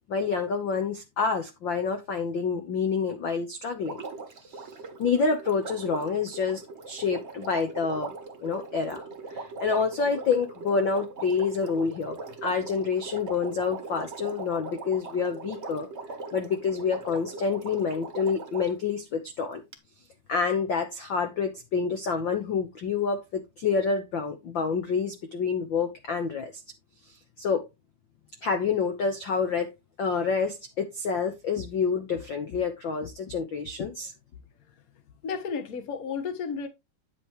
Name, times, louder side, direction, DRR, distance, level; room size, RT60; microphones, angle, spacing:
voice 1, 0.1-4.0 4.4-4.6 5.0-8.2 8.4-9.0 9.3-15.9 16.3-19.6 20.3-26.6 27.4-27.6 28.4-29.7 30.0-34.1, left 5 dB, 70° left, 1.1 m, -28 dB
Water, 3.8-18.8 19.7-19.8, right 3 dB, 40° right, 1.0 m, -40 dB
voice 2, 35.2-36.7, left 5 dB, 55° left, 0.9 m, -32 dB
9.8 x 8.1 x 3.1 m
omnidirectional pair, 3.7 m